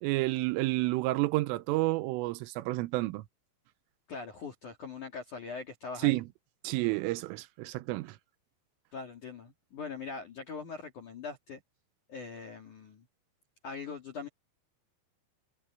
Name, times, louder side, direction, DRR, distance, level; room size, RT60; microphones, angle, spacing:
voice 1, 0.0-3.2 6.0-6.3 6.7-8.2, right 20 dB, 80° right, 3.3 m, -30 dB
voice 2, 4.1-6.2 8.9-11.6 12.1-13.0 13.6-14.3, left 5 dB, 45° left, 3.1 m, -41 dB
omnidirectional pair, 6.0 m